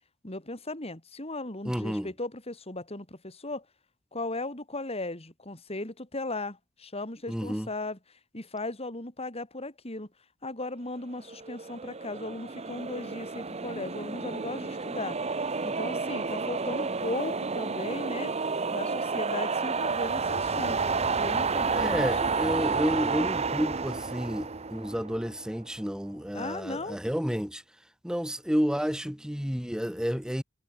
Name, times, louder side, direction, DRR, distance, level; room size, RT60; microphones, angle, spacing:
voice 1, 0.2-3.6 4.1-8.0 8.3-10.1 10.4-15.2 15.6-18.3 18.7-22.3 26.3-27.0, left 2 dB, 30° left, 4.0 m, -37 dB
voice 2, 1.6-2.1 7.3-7.7 21.7-27.6 28.0-30.4, equal, 5° right, 1.1 m, -30 dB
sound 1, 11.3-25.6, right 4 dB, 30° right, 1.0 m, -30 dB
head